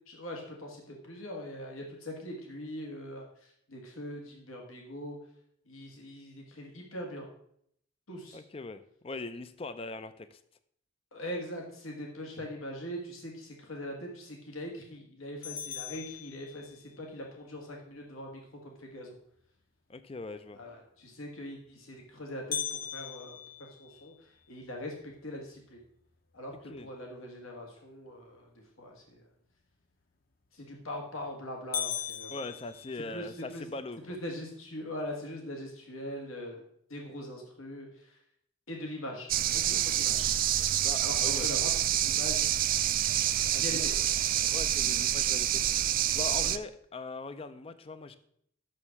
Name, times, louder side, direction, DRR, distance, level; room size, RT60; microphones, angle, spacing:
voice 1, 0.1-5.2 5.7-7.3 8.1-8.4 11.1-19.1 20.5-25.8 26.3-28.5 28.8-29.2 30.5-32.3 33.1-33.7 34.0-36.6 36.9-38.2 38.7-40.3 41.0-42.5 43.5-44.0 46.4-46.5, left 1 dB, 85° left, 1 dB, 1.8 m, -41 dB
voice 2, 8.3-10.4 19.9-20.6 26.7-26.9 32.3-34.0 39.7-39.8 40.8-41.5 43.5-43.9 44.5-48.2, left 3 dB, 25° left, 12 dB, 0.4 m, -41 dB
sound 1, 15.4-17.0 22.5-24.7 25.2-25.3 25.8-25.9 26.5-26.9 30.5-30.9 31.3-31.4 31.7-33.5, left 8 dB, 45° left, 0.9 m, -38 dB
sound 2, 39.3-46.6, right 12 dB, 45° right, 0.4 m, -27 dB
6.5 x 6.4 x 7.1 m, 0.69 s
head